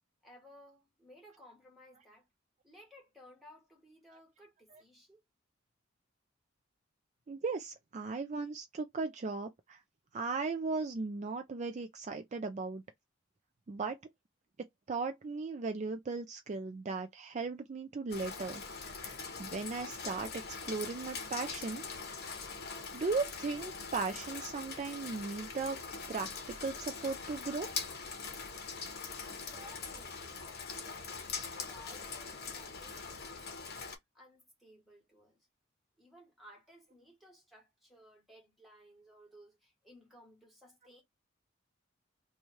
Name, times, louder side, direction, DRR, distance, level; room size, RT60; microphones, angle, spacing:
voice 1, 0.2-2.3 2.6-5.2 29.4-30.4 30.8-35.5 36.0-41.0, equal, ahead, 1.5 m, -58 dB
voice 2, 7.3-9.8 10.1-12.8 13.7-14.0 14.9-18.6 19.0-21.8 22.9-25.8 26.1-26.3 26.6-27.7, right 4 dB, 35° right, 0.4 m, -37 dB
Rain, 18.1-34.0, left 5 dB, 50° left, 1.0 m, -42 dB
3.1 x 2.3 x 4.1 m
head